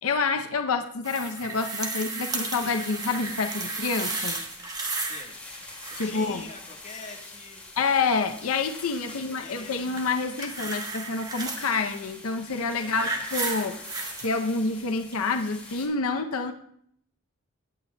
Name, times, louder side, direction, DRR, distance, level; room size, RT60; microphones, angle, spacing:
voice 1, 0.0-4.4 6.0-6.4 7.8-13.8 14.2-16.5, left 4 dB, 85° left, 7 dB, 0.6 m, -28 dB
sound 1, 1.0-5.3 5.5-6.3 10.0-11.7 12.5-14.3 15.1-15.2, right 3 dB, 20° right, 1.0 m, -33 dB
sound 2, 2.3-15.9, left 2 dB, 5° left, 2.1 m, -45 dB
voice 2, 5.0-5.4 6.0-7.6 9.0-9.9 12.8-13.2, left 3 dB, 35° left, 1 dB, 1.3 m, -45 dB
17.0 x 8.6 x 2.2 m, 0.66 s
head